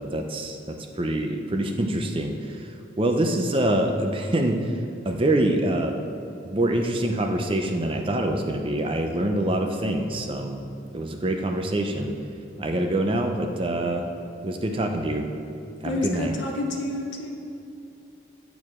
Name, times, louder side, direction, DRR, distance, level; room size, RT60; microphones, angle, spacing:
voice 1, 0.0-6.0 6.4-10.6 10.9-12.1 12.6-14.0 14.4-15.3 15.8-16.4, right 1 dB, 25° right, 4 dB, 0.5 m, -25 dB
voice 2, 15.8-17.3, left 2 dB, 65° left, 1 dB, 0.8 m, -29 dB
8.1 x 6.6 x 3.6 m, 2.7 s
head